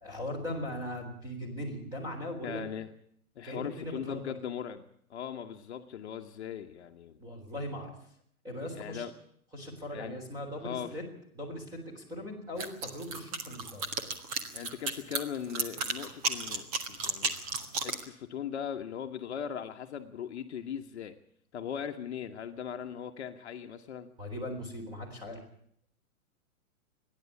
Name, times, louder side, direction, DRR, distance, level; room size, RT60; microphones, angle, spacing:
voice 1, 0.0-2.6 3.4-4.3 7.2-7.9 8.4-9.1 9.5-11.0 11.3-13.8 24.2-25.4, left 1 dB, 10° right, 3 dB, 3.8 m, -39 dB
voice 2, 2.4-2.9 3.3-4.8 5.1-7.2 8.7-9.1 9.9-10.2 10.6-10.9 14.5-17.3 17.8-21.1 21.5-24.1, left 8 dB, 50° left, 5 dB, 1.3 m, -39 dB
sound 1, 12.6-18.0, right 3 dB, 25° right, 1.5 m, -33 dB
28.0 x 11.0 x 8.4 m, 0.67 s
hypercardioid pair, 170°, 43 cm